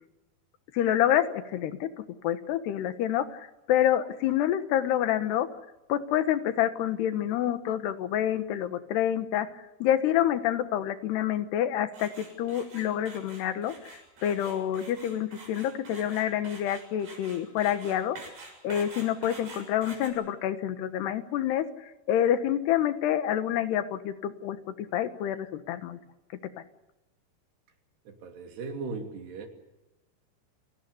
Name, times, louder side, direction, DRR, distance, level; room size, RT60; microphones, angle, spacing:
voice 1, 0.7-1.9 2.2-5.5 5.9-9.5 9.8-18.2 18.6-26.0, left 11 dB, 90° left, 10 dB, 3.5 m, -27 dB
sound 1, 11.9-20.1, right 3 dB, 65° right, 8.9 m, -46 dB
voice 2, 28.1-29.5, right 4 dB, 90° right, 4 dB, 5.0 m, -38 dB
29.5 x 18.0 x 6.9 m, 1.0 s
omnidirectional pair, 4.6 m